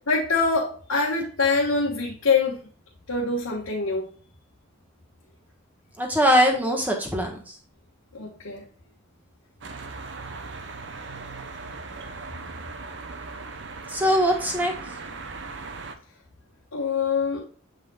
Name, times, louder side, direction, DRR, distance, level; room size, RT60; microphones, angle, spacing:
voice 1, 0.1-2.6 3.1-4.1 8.1-8.6 16.7-17.4, left 4 dB, 85° left, -5 dB, 1.6 m, -24 dB
voice 2, 6.0-7.6 13.9-14.7, equal, 10° right, 1 dB, 1.3 m, -22 dB
sound 1, 9.6-15.9, right 3 dB, 55° right, 0.8 m, -38 dB
7.8 x 5.2 x 2.4 m, 0.41 s
head